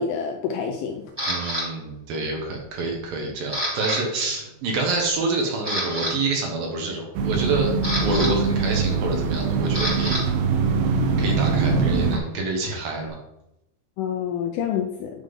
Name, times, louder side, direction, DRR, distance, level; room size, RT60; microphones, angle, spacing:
voice 1, 0.0-1.1 14.0-15.1, left 7 dB, 85° left, 4 dB, 2.2 m, -27 dB
Camera, 1.2-1.6 2.2-2.6 2.9-4.0 4.2-4.5 5.0-5.1 5.5-6.1 7.3-10.2 10.5-13.1, equal, 20° right, 0.7 m, -30 dB
voice 2, 1.3-7.7 8.0-10.2 11.2-13.2, right 3 dB, 65° right, 1 dB, 2.6 m, -27 dB
sound 1, 7.2-12.2, right 4 dB, 85° right, 2.9 m, -22 dB
9.5 x 3.8 x 5.3 m, 0.86 s
omnidirectional pair, 4.9 m